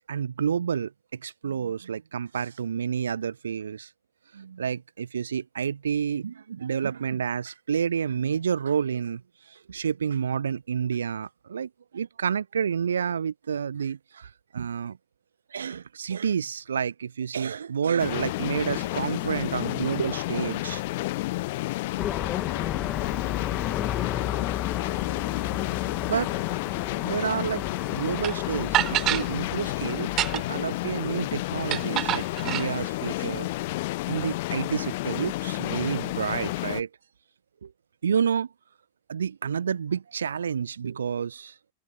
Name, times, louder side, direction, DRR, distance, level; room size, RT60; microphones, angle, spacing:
voice 1, 0.1-3.9 4.3-9.2 9.5-15.0 15.5-20.8 26.1-26.3 27.0-27.6 27.9-33.5 34.1-36.9 37.6-37.7 38.0-38.5 39.1-41.5, right 7 dB, 70° right, 1.1 m, -29 dB
sound 1, 18.0-36.8, left 19 dB, 50° left, 1.2 m, -31 dB
sound 2, 22.0-30.4, left 10 dB, 30° left, 1.7 m, -33 dB
sound 3, 28.2-28.3 28.7-29.3 30.0-30.6 31.7-32.7, right 14 dB, 35° right, 4.6 m, -26 dB
open air
figure-of-eight pair, 90°, 0 cm